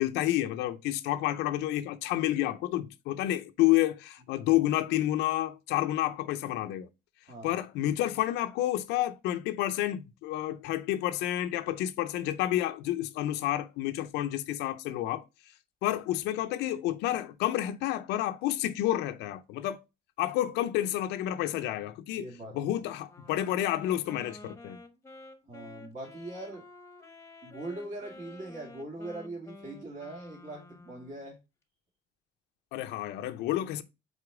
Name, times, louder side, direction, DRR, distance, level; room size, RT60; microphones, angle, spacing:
voice 1, 0.0-6.9 7.4-15.2 15.8-19.8 20.2-22.3 22.5-24.8 32.7-33.8, left 14 dB, 90° left, 0.5 m, -29 dB
voice 2, 22.1-22.6 25.5-26.6 27.4-31.4, right 2 dB, 50° right, 2.7 m, -41 dB
Wind instrument woodwind instrument, 23.1-31.3, left 2 dB, 15° left, 0.9 m, -50 dB
4.9 x 4.3 x 4.8 m
cardioid pair, 110°, 17 cm